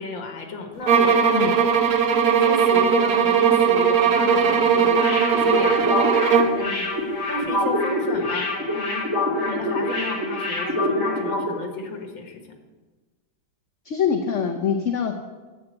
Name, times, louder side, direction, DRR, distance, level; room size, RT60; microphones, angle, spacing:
voice 1, 0.0-1.6 2.3-5.8 6.6-6.9 7.3-9.1 9.4-12.4, left 3 dB, 80° left, 4 dB, 2.4 m, -32 dB
sound 1, 0.9-6.6, right 7 dB, 60° right, 1.3 m, -19 dB
sound 2, 4.9-11.5 11.8-11.9, left 1 dB, 35° left, 2.6 m, -25 dB
voice 2, 13.8-15.1, left 7 dB, 55° left, 4 dB, 0.9 m, -24 dB
9.7 x 8.4 x 7.8 m, 1.3 s
omnidirectional pair, 2.0 m